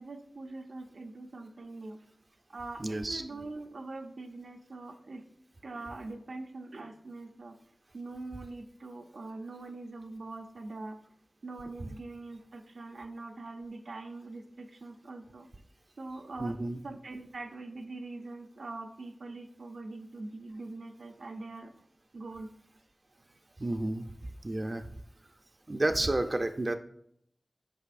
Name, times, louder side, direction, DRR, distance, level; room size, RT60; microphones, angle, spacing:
voice 1, 0.0-2.0 2.5-5.2 5.6-7.5 7.9-11.0 11.4-15.5 16.0-16.6 16.8-21.7 22.1-22.5, right 2 dB, 85° right, 4 dB, 0.6 m, -43 dB
voice 2, 2.8-3.2 16.4-16.8 23.6-24.1 24.4-24.8 25.7-26.8, right 2 dB, 40° right, 7 dB, 0.4 m, -30 dB
8.4 x 5.4 x 2.5 m, 0.68 s
wide cardioid pair, 60°, 0 cm